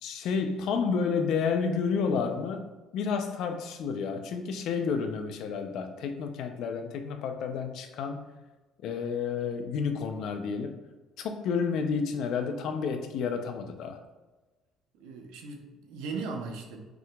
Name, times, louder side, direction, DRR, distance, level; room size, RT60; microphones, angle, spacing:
voice 1, 0.0-2.7 2.9-8.2 8.8-10.8 11.2-14.0, left 5 dB, 70° left, 6 dB, 0.5 m, -30 dB
voice 2, 14.9-16.8, right 4 dB, 85° right, 3 dB, 0.7 m, -38 dB
6.0 x 2.9 x 2.3 m, 1.2 s
cardioid pair, 110°, 0 cm